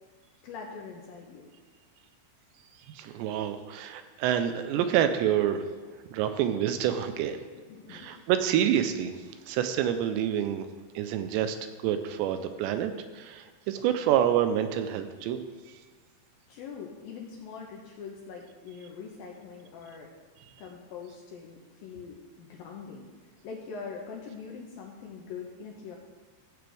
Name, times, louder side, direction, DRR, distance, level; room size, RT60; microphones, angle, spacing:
voice 1, 0.4-1.5 7.5-8.2 16.5-20.1 20.6-26.0, left 5 dB, 75° left, -1 dB, 2.2 m, -43 dB
voice 2, 3.0-5.6 6.1-7.4 7.9-9.1 9.5-10.7 11.0-11.6 11.8-15.4, right 10 dB, 80° right, 8 dB, 2.8 m, -27 dB
14.5 x 7.9 x 3.4 m, 1.4 s
omnidirectional pair, 5.1 m